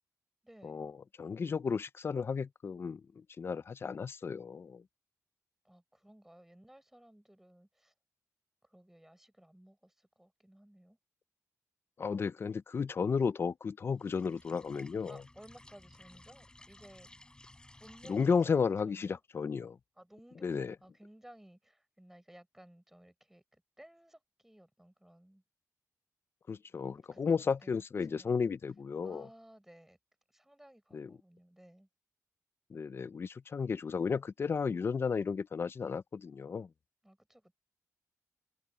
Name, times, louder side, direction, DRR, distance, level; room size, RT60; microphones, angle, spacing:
voice 1, 0.4-0.8 5.6-7.9 8.7-11.0 15.1-17.1 17.8-19.2 20.0-25.4 27.1-27.7 28.1-28.4 29.0-30.0 30.3-31.9 37.0-37.5, right 1 dB, 5° right, 5.7 m, -58 dB
voice 2, 1.2-4.8 12.0-15.2 18.1-19.8 20.4-20.8 26.5-29.3 30.9-31.1 32.7-36.7, left 5 dB, 45° left, 0.6 m, -33 dB
sound 1, 14.0-18.6, left 2 dB, 15° left, 6.9 m, -57 dB
wide cardioid pair, 145°, 6 cm